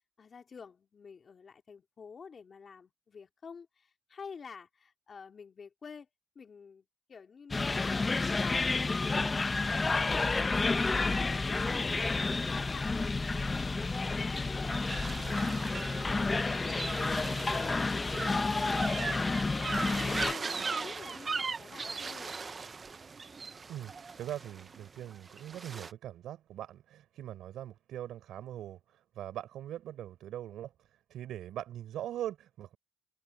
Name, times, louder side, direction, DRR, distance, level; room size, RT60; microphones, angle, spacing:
voice 1, 0.2-6.1 6.3-11.9 12.3-13.2 13.5-18.5 19.0-19.3 19.7-22.3, left 5 dB, 45° left, 3.3 m, -49 dB
sound 1, 7.5-20.3, left 3 dB, 25° left, 0.8 m, -30 dB
sound 2, 14.7-25.9, right 4 dB, 35° right, 0.8 m, -39 dB
voice 2, 23.7-32.8, right 12 dB, 85° right, 4.2 m, -42 dB
cardioid pair, 90°, 0 cm